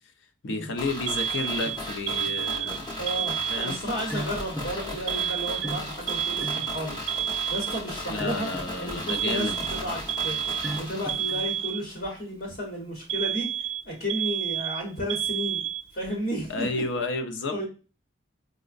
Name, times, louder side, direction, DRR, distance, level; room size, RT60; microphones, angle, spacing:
voice 1, 0.4-2.9 3.5-3.8 8.1-9.6 16.5-17.6, left 3 dB, 70° left, 0.5 m, -31 dB
sound 1, 0.8-11.7 12.0-12.1, left 1 dB, 20° left, 0.7 m, -36 dB
Alarm, 1.1-4.0 5.1-8.0 9.1-12.1 13.1-16.1, right 10 dB, 90° right, 0.4 m, -30 dB
sound 2, 1.6-11.6, equal, ahead, 0.4 m, -41 dB
voice 2, 3.0-7.0 7.5-8.5 8.8-10.4 10.7-15.6 15.9-16.8 17.5-17.6, equal, 55° left, 0.9 m, -33 dB
4.9 x 2.1 x 2.4 m
head